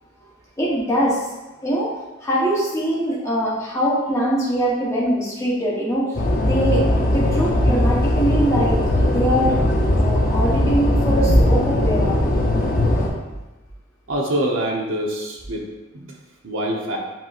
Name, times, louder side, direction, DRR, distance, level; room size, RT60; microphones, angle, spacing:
voice 1, 0.6-1.3 1.6-1.9 2.2-6.8 7.1-9.6 10.0-12.2, right 1 dB, 15° left, -7 dB, 0.9 m, -22 dB
sound 1, 6.2-13.1, left 1 dB, 45° left, 0.7 m, -19 dB
voice 2, 14.1-15.7 15.9-16.2 16.4-17.0, right 1 dB, 85° right, -1 dB, 0.8 m, -25 dB
7.4 x 3.0 x 2.4 m, 1.1 s
head